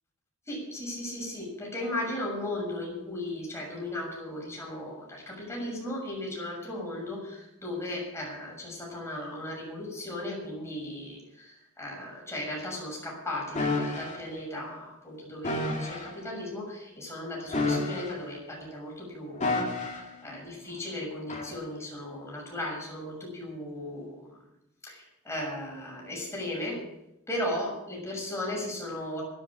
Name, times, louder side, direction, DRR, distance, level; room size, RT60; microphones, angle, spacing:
voice 1, 0.5-24.4 24.8-26.8 27.3-29.2, left 1 dB, 10° left, -2 dB, 6.6 m, -36 dB
sound 1, 13.6-14.2 15.4-16.1 17.5-18.4 19.4-20.2 21.3-21.5, left 2 dB, 35° left, 3.2 m, -30 dB
11.5 x 11.5 x 8.4 m, 0.85 s
head